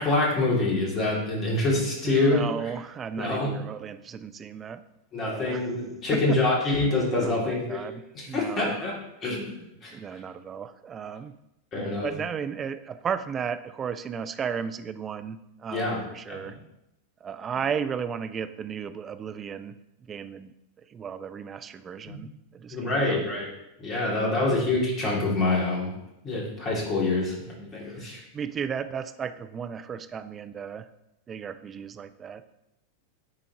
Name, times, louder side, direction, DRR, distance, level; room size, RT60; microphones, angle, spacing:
voice 1, 0.0-2.4 3.2-3.6 5.1-7.8 8.1-9.9 11.7-12.1 15.7-16.0 16.3-16.6 22.1-22.2 22.7-23.5 23.8-25.9 26.2-28.2, left 2 dB, 30° left, -3 dB, 2.2 m, -26 dB
voice 2, 2.0-4.8 5.2-5.6 6.1-6.4 7.2-8.8 9.9-11.3 12.0-16.6 17.2-19.7 20.1-20.5 20.9-23.2 24.2-24.6 28.3-30.9 31.3-32.4, right 7 dB, 25° right, 11 dB, 0.4 m, -34 dB
10.5 x 3.8 x 2.8 m, 0.88 s
figure-of-eight pair, 90°, 0 cm